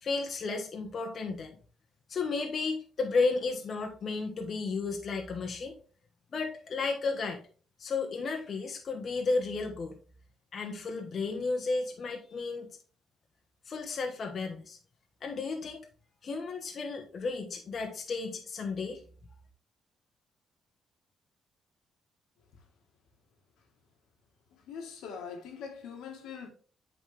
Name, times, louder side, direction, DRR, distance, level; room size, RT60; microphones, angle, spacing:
voice 1, 0.0-1.5 2.1-5.8 6.3-7.4 7.8-10.0 10.5-12.7 13.7-14.8 15.2-15.8 16.2-19.0, left 4 dB, 50° left, 1.2 m, -33 dB
voice 2, 24.5-26.5, left 6 dB, 85° left, 1.6 m, -43 dB
8.3 x 4.2 x 3.4 m
cardioid pair, 90°, 0 cm